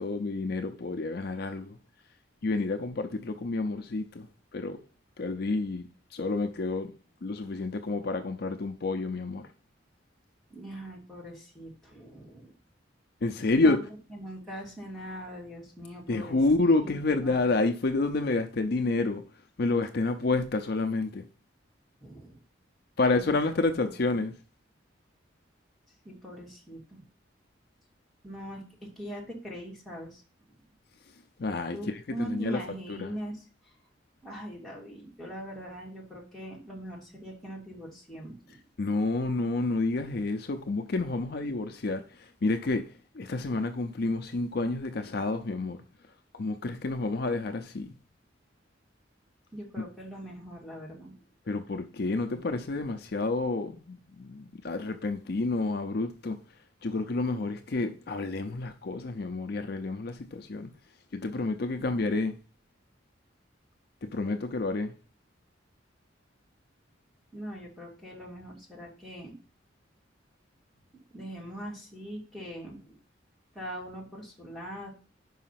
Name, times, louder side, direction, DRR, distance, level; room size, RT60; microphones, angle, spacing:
voice 1, 0.0-1.8 2.4-4.3 4.5-4.8 5.2-6.9 7.2-9.5 13.2-13.8 16.1-19.2 19.6-21.3 23.0-24.3 31.4-32.6 32.9-33.2 38.8-45.8 46.3-47.9 51.5-56.4 56.8-60.7 61.1-62.4 64.0-64.9, left 3 dB, 55° left, 0.5 m, -29 dB
voice 2, 10.5-12.5 13.6-13.8 14.1-16.4 16.8-17.4 22.0-22.4 23.1-23.4 23.7-24.2 26.0-27.0 28.2-28.6 29.0-30.2 31.7-33.4 34.2-38.6 49.5-51.2 61.7-62.0 67.3-69.4 71.1-73.0 73.5-74.9, equal, ahead, 2.3 m, -41 dB
5.5 x 5.1 x 5.7 m
head